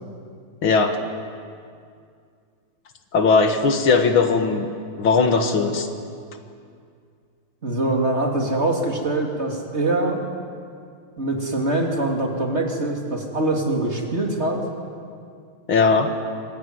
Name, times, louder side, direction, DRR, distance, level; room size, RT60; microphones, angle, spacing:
voice 1, 0.6-1.0 3.1-4.7 5.0-5.9 15.7-16.1, left 4 dB, 70° left, 6 dB, 2.4 m, -18 dB
voice 2, 7.6-10.2 11.2-14.6, right 2 dB, 30° right, 1 dB, 3.1 m, -23 dB
26.0 x 21.0 x 9.6 m, 2.3 s
omnidirectional pair, 2.4 m